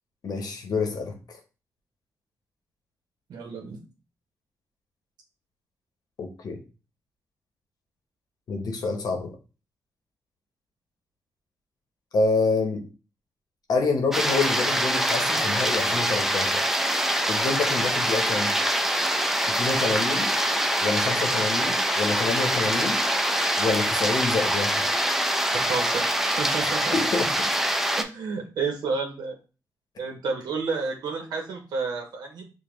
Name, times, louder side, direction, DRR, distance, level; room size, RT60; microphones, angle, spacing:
voice 1, 0.2-1.2 6.2-6.6 8.5-9.4 12.1-12.8 13.7-16.7 17.3-18.5 19.5-20.3 20.8-23.0 23.6-24.9 26.9-27.3, left 3 dB, 70° left, 4 dB, 0.8 m, -27 dB
voice 2, 3.3-3.8 25.6-27.0 28.0-29.3 30.0-32.4, right 4 dB, 90° right, 2 dB, 0.7 m, -31 dB
sound 1, 14.1-28.0, right 1 dB, 5° right, 0.5 m, -24 dB
5.0 x 2.1 x 3.0 m, 0.33 s
cardioid pair, 70°, 7 cm